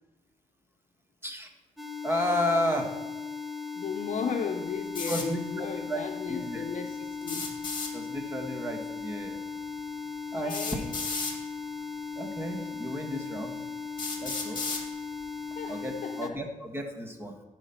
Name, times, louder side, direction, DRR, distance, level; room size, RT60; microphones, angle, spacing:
sound 1, 1.8-16.3, left 5 dB, ahead, 1.1 m, -38 dB
voice 1, 2.0-3.0 5.1-6.0 6.3-6.6 7.9-9.4 10.3-10.5 12.2-13.6 14.2-14.6 15.7-15.9 16.2-17.3, left 1 dB, 15° right, 4 dB, 1.5 m, -32 dB
voice 2, 3.7-7.5 10.3-10.9 15.6-16.4, left 6 dB, 60° left, 4 dB, 0.7 m, -35 dB
sound 2, 4.9-5.3 7.2-7.9 9.4-9.5 10.5-11.4 12.4-12.5 13.1-13.2 14.0-14.8, left 3 dB, 30° left, 2.0 m, -34 dB
14.5 x 5.1 x 5.8 m, 1.2 s
cardioid pair, 110°, 14 cm